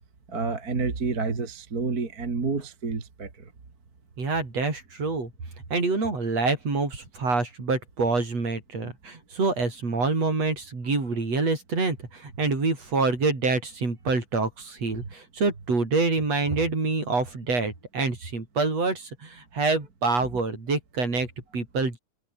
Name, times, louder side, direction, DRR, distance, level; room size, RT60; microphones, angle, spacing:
voice 1, 0.3-3.3, right 4 dB, 30° right, 2.9 m, -29 dB
voice 2, 4.2-5.3 5.7-22.0, right 3 dB, 50° right, 7.1 m, -26 dB
omnidirectional pair, 3.8 m